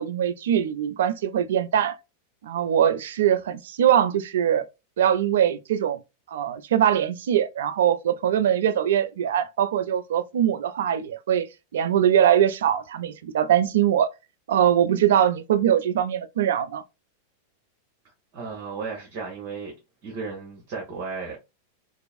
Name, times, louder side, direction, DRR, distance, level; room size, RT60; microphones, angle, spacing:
voice 1, 0.0-1.9 2.4-4.6 5.0-6.0 6.3-11.5 11.7-14.1 14.5-16.8, right 10 dB, 60° right, 0.3 m, -22 dB
voice 2, 18.3-19.7 20.0-21.4, right 4 dB, 40° right, 1.0 m, -34 dB
3.0 x 2.6 x 2.4 m
figure-of-eight pair, 90°, 0 cm